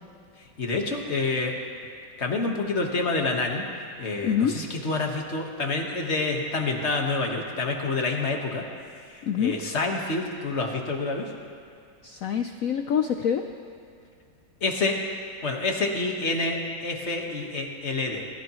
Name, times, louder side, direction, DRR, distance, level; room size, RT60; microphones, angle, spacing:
voice 1, 0.6-1.5 2.2-3.6 4.0-8.6 9.1-11.3 14.6-15.0 15.4-18.2, left 3 dB, 35° left, 1 dB, 1.5 m, -28 dB
voice 2, 4.2-4.6 9.2-9.6 12.0-13.4, left 8 dB, 80° left, 6 dB, 0.7 m, -25 dB
24.0 x 14.5 x 3.1 m, 2.3 s
omnidirectional pair, 2.1 m